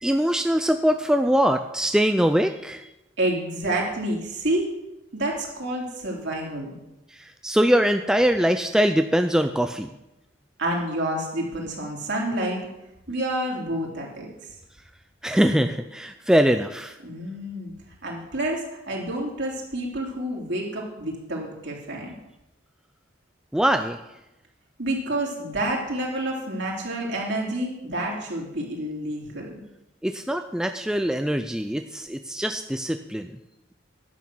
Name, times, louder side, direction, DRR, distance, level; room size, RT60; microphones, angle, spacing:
voice 1, 0.0-2.8 7.4-9.9 15.2-16.9 23.5-24.0 30.0-33.3, equal, 5° right, 7 dB, 0.3 m, -22 dB
voice 2, 3.2-4.7 5.1-6.7 10.6-12.7 13.1-14.3 17.0-17.7 18.0-22.1 24.8-29.6, right 1 dB, 60° right, -2 dB, 3.1 m, -28 dB
11.0 x 8.4 x 6.1 m, 0.92 s
head